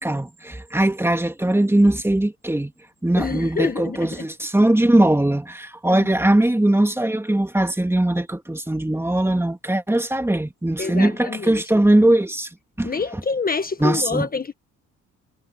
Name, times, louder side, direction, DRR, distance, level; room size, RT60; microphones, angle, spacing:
voice 1, 0.0-2.7 3.0-12.5 12.8-13.2 13.8-14.3, right 1 dB, 10° right, 2.4 m, -20 dB
voice 2, 3.2-4.1 5.9-6.1 10.8-11.6 12.8-14.5, left 4 dB, 30° left, 1.4 m, -26 dB
cardioid pair, 90°, 30 cm